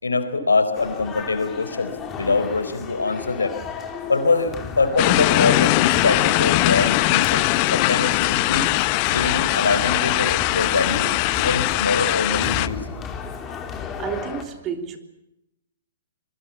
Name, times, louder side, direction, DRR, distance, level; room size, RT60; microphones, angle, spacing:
voice 1, 0.0-3.5 4.1-8.7 9.1-12.8, left 3 dB, 85° left, 10 dB, 4.1 m, -24 dB
sound 1, 0.7-14.4, left 6 dB, 20° left, 3.4 m, -34 dB
sound 2, 5.0-12.7, left 21 dB, 40° left, 0.8 m, -21 dB
voice 2, 13.9-15.0, right 8 dB, 25° right, 7 dB, 3.3 m, -30 dB
26.0 x 22.0 x 7.2 m, 0.87 s
hypercardioid pair, 125°, 0 cm